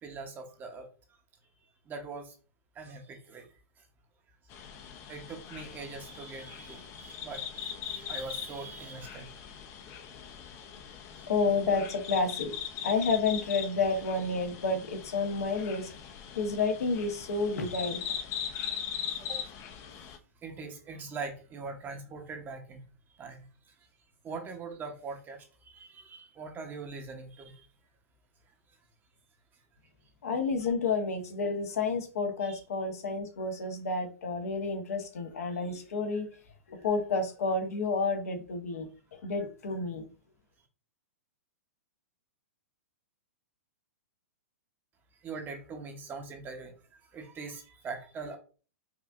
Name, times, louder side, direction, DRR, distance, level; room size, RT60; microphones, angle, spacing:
voice 1, 0.0-0.9 1.9-2.3 2.7-3.5 5.1-9.3 18.6-19.4 20.4-22.8 23.2-23.7 24.2-27.7 32.4-32.6 45.2-46.7 47.1-48.4, right 4 dB, 25° right, 4 dB, 0.8 m, -42 dB
sound 1, 4.5-20.2, left 8 dB, 35° left, 0.5 m, -40 dB
voice 2, 11.3-12.5 12.8-15.9 16.4-18.0 30.2-36.3 36.7-40.0, left 4 dB, 75° left, 4 dB, 0.9 m, -30 dB
4.9 x 2.5 x 2.4 m, 0.36 s
hypercardioid pair, 120°, 8 cm